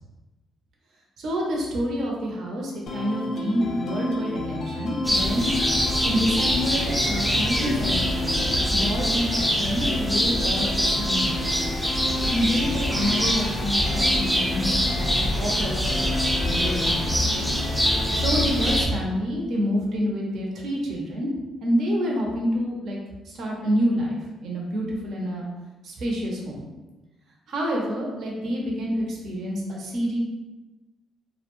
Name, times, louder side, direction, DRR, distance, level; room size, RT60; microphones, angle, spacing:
voice 1, 1.2-5.5 6.0-11.6 12.2-17.2 18.1-21.3 21.6-23.0 23.3-25.5 25.8-26.6 27.5-30.2, equal, 70° right, -1 dB, 0.6 m, -28 dB
sound 1, 2.9-18.9, left 2 dB, 55° left, 0.4 m, -32 dB
sound 2, 5.0-18.9, equal, 5° right, 0.4 m, -24 dB
2.3 x 2.1 x 3.0 m, 1.1 s
cardioid pair, 90°, 0 cm